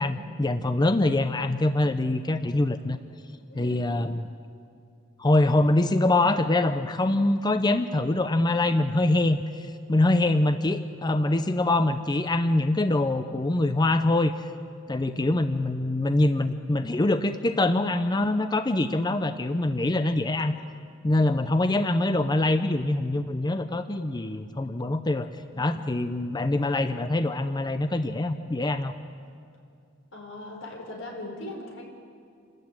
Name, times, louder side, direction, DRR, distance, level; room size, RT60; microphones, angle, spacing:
voice 1, 0.0-3.0 3.5-4.3 5.2-14.5 14.9-20.5 21.0-25.3 25.6-29.0, left 2 dB, 20° left, 9 dB, 0.6 m, -24 dB
voice 2, 3.5-3.8 30.1-31.8, left 1 dB, 85° left, 1 dB, 5.0 m, -39 dB
28.0 x 13.0 x 9.0 m, 2.3 s
head